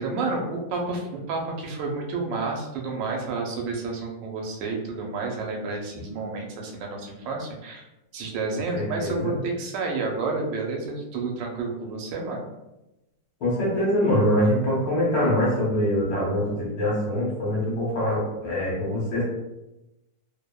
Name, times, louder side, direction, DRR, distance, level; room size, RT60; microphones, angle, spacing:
voice 1, 0.0-7.9 8.1-12.5, right 3 dB, 90° right, 0 dB, 1.3 m, -30 dB
voice 2, 8.7-9.3 13.4-19.2, equal, 55° left, -6 dB, 1.3 m, -24 dB
3.1 x 2.0 x 2.2 m, 0.96 s
omnidirectional pair, 1.9 m